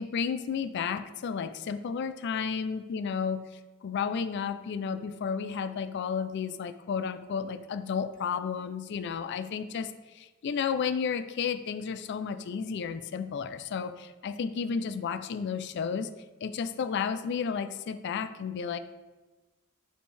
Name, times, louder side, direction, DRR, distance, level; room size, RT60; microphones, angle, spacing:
voice 1, 0.0-3.5 3.8-16.1 16.4-18.8, left 6 dB, 55° left, 11 dB, 0.3 m, -32 dB
6.5 x 5.1 x 3.3 m, 1.2 s
head